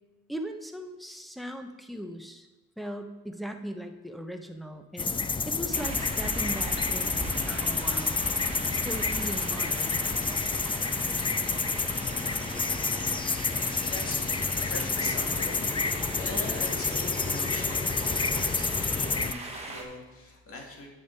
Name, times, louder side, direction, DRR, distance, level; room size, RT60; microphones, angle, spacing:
voice 1, 0.3-2.5 2.8-5.1 5.5-8.2 8.7-10.0, equal, ahead, 5 dB, 0.8 m, -38 dB
sound 1, 5.0-19.3, left 4 dB, 15° left, 0.4 m, -29 dB
sound 2, 5.7-19.8, right 2 dB, 20° right, 1.5 m, -38 dB
voice 2, 12.6-20.9, left 2 dB, 45° left, 0 dB, 2.1 m, -42 dB
8.7 x 6.2 x 4.5 m, 1.2 s
cardioid pair, 90°, 30 cm